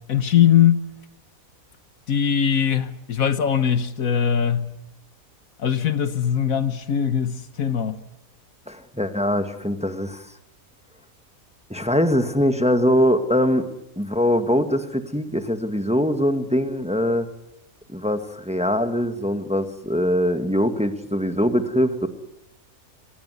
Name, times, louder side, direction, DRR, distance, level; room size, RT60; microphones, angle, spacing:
voice 1, 0.1-0.8 2.1-4.7 5.6-7.9, left 9 dB, 70° left, 1.5 m, -20 dB
voice 2, 8.7-10.2 11.7-13.7 14.0-17.3 17.9-22.1, equal, 5° right, 1.6 m, -22 dB
25.5 x 19.0 x 9.5 m
omnidirectional pair, 1.5 m